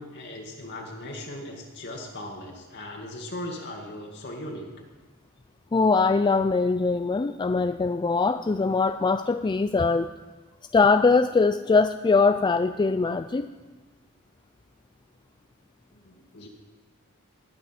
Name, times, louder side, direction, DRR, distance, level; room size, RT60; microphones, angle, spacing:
voice 1, 0.0-4.7 16.0-16.5, left 1 dB, 55° left, 0 dB, 2.0 m, -38 dB
voice 2, 5.7-10.1 10.7-13.5, left 4 dB, 20° left, 10 dB, 0.3 m, -22 dB
20.5 x 8.7 x 5.8 m, 1.3 s
head